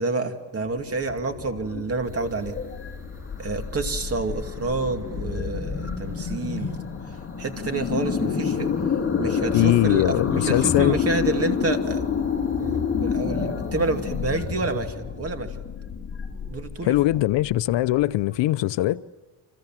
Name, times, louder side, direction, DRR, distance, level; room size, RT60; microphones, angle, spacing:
voice 1, 0.0-2.6 3.4-6.7 7.4-8.7 9.2-12.0 12.6-15.6 16.5-17.0, right 3 dB, 30° right, 2.6 m, -28 dB
sound 1, 0.6-18.4, left 6 dB, 30° left, 3.7 m, -29 dB
sound 2, 2.0-14.9, equal, 5° right, 7.2 m, -51 dB
voice 2, 9.5-11.0 16.8-19.0, left 15 dB, 65° left, 0.8 m, -21 dB
30.0 x 26.5 x 7.6 m
cardioid pair, 145°, 46 cm